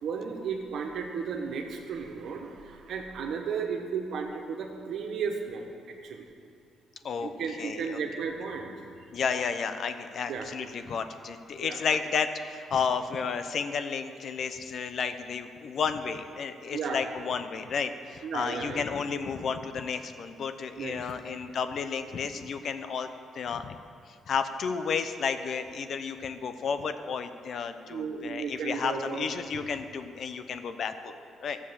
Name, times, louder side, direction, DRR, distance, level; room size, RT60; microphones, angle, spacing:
voice 1, 0.0-5.7 6.0-6.2 7.2-8.7 10.3-10.4 11.6-11.8 16.7-17.0 18.2-18.9 20.8-21.0 27.9-29.6, right 6 dB, 70° right, 3 dB, 1.6 m, -34 dB
voice 2, 7.6-8.0 9.1-23.1 23.3-23.8 24.1-31.6, left 6 dB, 60° left, 9 dB, 0.8 m, -32 dB
12.5 x 7.3 x 7.2 m, 2.3 s
cardioid pair, 90°, 0 cm